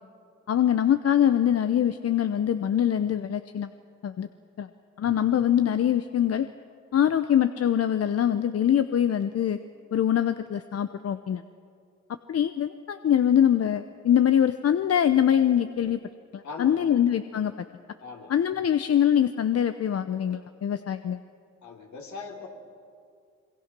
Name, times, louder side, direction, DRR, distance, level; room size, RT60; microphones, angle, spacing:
voice 1, 0.5-3.7 4.0-4.3 4.6-4.7 5.0-6.5 6.9-9.6 9.9-11.4 12.3-16.0 16.3-17.5 18.3-21.2, left 9 dB, 50° left, 11 dB, 0.8 m, -23 dB
voice 2, 16.4-17.0 18.0-18.3 21.6-22.5, left 4 dB, 70° left, 1 dB, 3.6 m, -40 dB
26.5 x 22.0 x 6.1 m, 2.3 s
supercardioid pair, 60°, 30 cm